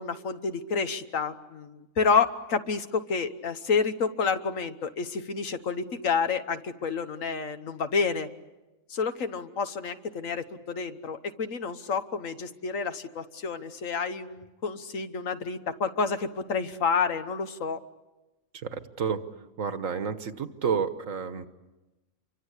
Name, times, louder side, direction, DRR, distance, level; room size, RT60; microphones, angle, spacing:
voice 1, 0.0-8.3 8.9-17.8, left 5 dB, 70° left, 9 dB, 1.5 m, -29 dB
voice 2, 18.5-19.2 19.6-21.5, right 6 dB, 70° right, 10 dB, 1.6 m, -30 dB
28.5 x 24.5 x 8.2 m, 1.1 s
omnidirectional pair, 1.5 m